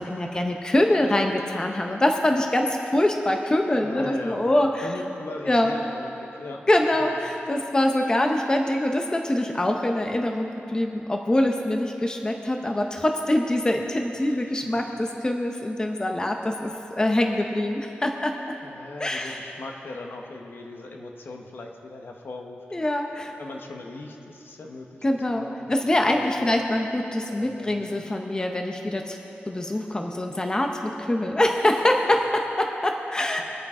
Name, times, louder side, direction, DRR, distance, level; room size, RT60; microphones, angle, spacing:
voice 1, 0.0-4.9 5.5-5.7 6.7-18.3 19.0-19.4 22.7-23.3 25.0-29.2 29.5-33.4, left 1 dB, 20° left, 3 dB, 0.7 m, -24 dB
voice 2, 3.8-4.4 4.8-6.7 7.0-7.2 14.1-14.8 18.6-22.6 23.4-26.6 27.3-27.7, left 2 dB, 65° left, 2 dB, 1.1 m, -39 dB
22.5 x 8.8 x 3.7 m, 3.0 s
wide cardioid pair, 140°, 4 cm